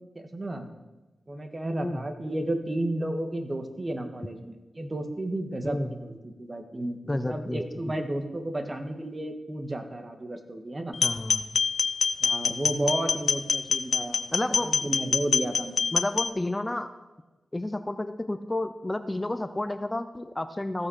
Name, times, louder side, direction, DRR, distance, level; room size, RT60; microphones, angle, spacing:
voice 1, 0.2-0.7 1.3-10.9 12.2-14.3 14.6-15.9, right 1 dB, 40° right, 6 dB, 1.7 m, -32 dB
voice 2, 7.1-7.6 11.0-11.5 14.3-14.8 15.9-16.9 17.5-20.9, left 1 dB, 25° left, 10 dB, 0.8 m, -31 dB
sound 1, 10.9-16.3, left 5 dB, 70° left, 0.6 m, -25 dB
15.5 x 6.2 x 6.4 m, 1.1 s
cardioid pair, 40°, 0 cm